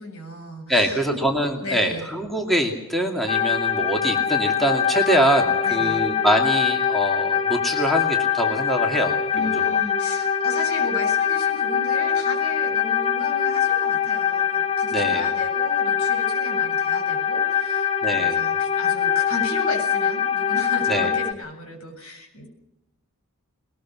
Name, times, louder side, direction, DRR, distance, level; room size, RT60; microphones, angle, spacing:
voice 1, 0.0-1.2 1.6-2.1 5.6-6.0 9.3-22.5, left 2 dB, 70° left, 3 dB, 7.9 m, -35 dB
voice 2, 0.7-9.2 14.9-15.2 18.0-18.4 20.9-21.1, right 1 dB, ahead, 2 dB, 2.4 m, -23 dB
sound 1, 3.3-21.3, left 8 dB, 25° left, 0.8 m, -23 dB
21.0 x 21.0 x 7.5 m, 0.88 s
head